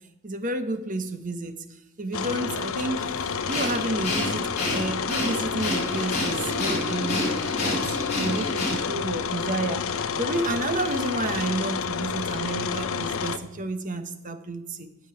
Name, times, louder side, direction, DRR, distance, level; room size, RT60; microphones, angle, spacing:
voice 1, 0.2-1.6 2.0-7.3 7.6-9.8 10.2-14.9, right 2 dB, 40° right, 9 dB, 1.1 m, -30 dB
sound 1, 2.1-13.4, left 6 dB, 75° left, 0.7 m, -29 dB
Breathing, 3.5-9.0, left 1 dB, 35° left, 5.6 m, -29 dB
15.5 x 5.5 x 9.9 m, 0.96 s
head